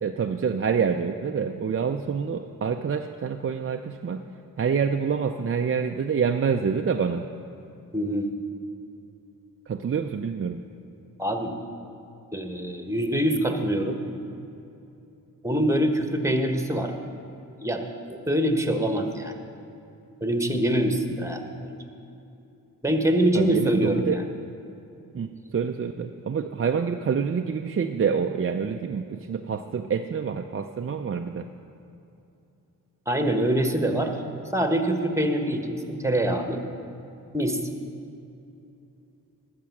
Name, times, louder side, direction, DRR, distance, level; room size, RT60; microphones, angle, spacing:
voice 1, 0.0-4.2 4.6-7.3 9.7-10.6 23.3-24.2 25.1-31.5, right 6 dB, 35° right, 4 dB, 0.5 m, -27 dB
voice 2, 7.9-8.3 11.2-11.5 12.3-14.0 15.4-16.9 17.6-19.4 20.2-21.8 22.8-24.2 33.1-34.1 34.5-36.6 37.3-37.6, right 1 dB, 10° right, 5 dB, 1.3 m, -24 dB
12.0 x 7.5 x 6.0 m, 2.8 s
cardioid pair, 45°, 37 cm